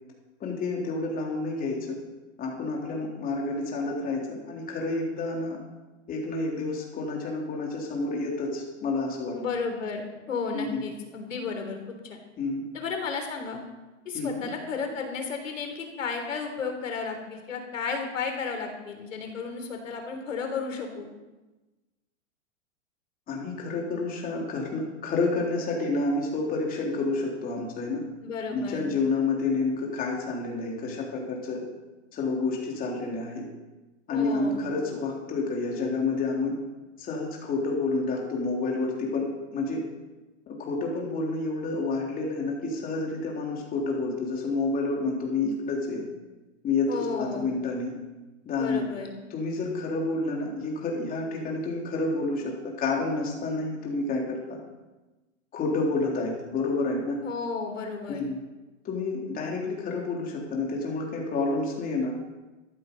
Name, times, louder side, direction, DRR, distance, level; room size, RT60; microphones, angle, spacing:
voice 1, 0.4-2.0 2.4-5.6 6.1-9.4 10.5-10.8 12.4-12.6 14.1-14.5 23.3-28.0 28.5-31.6 32.1-33.5 34.1-36.5 37.0-39.8 40.5-46.0 46.6-47.9 48.5-48.8 49.3-54.6 55.5-57.2 58.1-58.4 58.8-62.1, left 3 dB, 25° left, -1 dB, 3.6 m, -29 dB
voice 2, 9.3-12.2 12.7-13.6 14.1-21.1 28.2-28.9 34.1-34.6 46.9-47.5 48.6-49.1 57.2-58.2, left 5 dB, 85° left, 4 dB, 3.7 m, -33 dB
14.0 x 12.5 x 5.5 m, 1.1 s
hypercardioid pair, 140°, 37 cm